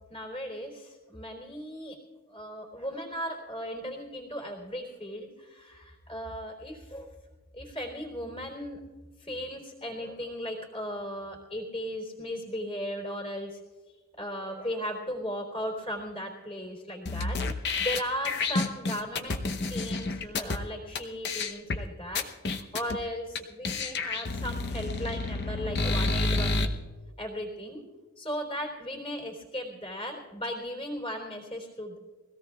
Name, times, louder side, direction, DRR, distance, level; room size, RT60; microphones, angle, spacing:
voice 1, 0.1-2.0 2.3-7.1 7.5-8.8 9.2-13.6 14.2-17.4 17.8-22.3 22.7-26.7 27.2-27.8 28.2-32.0, equal, 25° left, -1 dB, 3.4 m, -37 dB
sound 1, 17.1-20.6 21.0-21.1 21.2-21.8 22.2-23.0 23.4-23.5 23.6-26.7, left 3 dB, 50° left, 0.9 m, -29 dB
23.5 x 17.0 x 2.4 m, 1.4 s
head